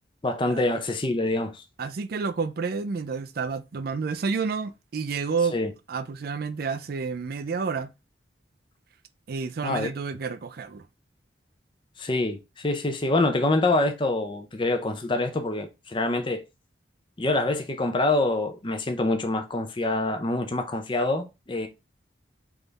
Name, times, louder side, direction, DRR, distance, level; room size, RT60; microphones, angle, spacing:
voice 1, 0.2-1.6 5.5-5.7 9.6-9.9 12.0-16.4 17.2-21.7, left 2 dB, 25° left, 0.6 m, -26 dB
voice 2, 1.8-5.6 5.9-7.9 9.3-10.8, right 5 dB, 55° right, 0.4 m, -30 dB
3.6 x 3.4 x 3.9 m
head